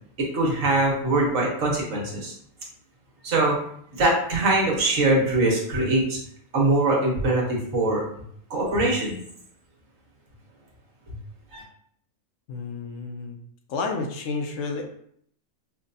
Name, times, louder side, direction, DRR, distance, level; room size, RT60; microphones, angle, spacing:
voice 1, 0.3-2.3 3.2-3.5 4.0-6.2 6.5-8.0 8.5-9.2 11.5-11.6, right 2 dB, 65° right, -3 dB, 1.4 m, -22 dB
voice 2, 12.5-13.4 13.7-14.8, left 4 dB, 70° left, 3 dB, 0.9 m, -30 dB
5.7 x 2.2 x 2.6 m, 0.67 s
omnidirectional pair, 1.5 m